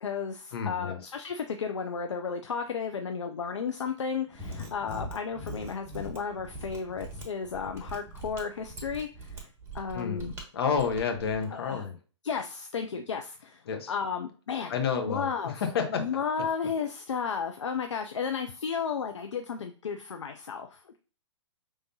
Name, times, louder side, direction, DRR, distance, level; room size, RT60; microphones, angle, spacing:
voice 1, 0.0-9.5 9.7-10.3 11.5-11.8 12.2-14.7 15.1-15.6 15.9-21.0, left 6 dB, 75° left, 6 dB, 0.5 m, -33 dB
voice 2, 0.5-1.0 9.9-12.0 13.7-13.9 14.7-16.0, left 6 dB, 55° left, 6 dB, 1.1 m, -30 dB
Mechanisms, 4.3-11.5, right 1 dB, 15° right, 1.1 m, -42 dB
5.5 x 3.4 x 2.7 m, 0.39 s
figure-of-eight pair, 120°, 15 cm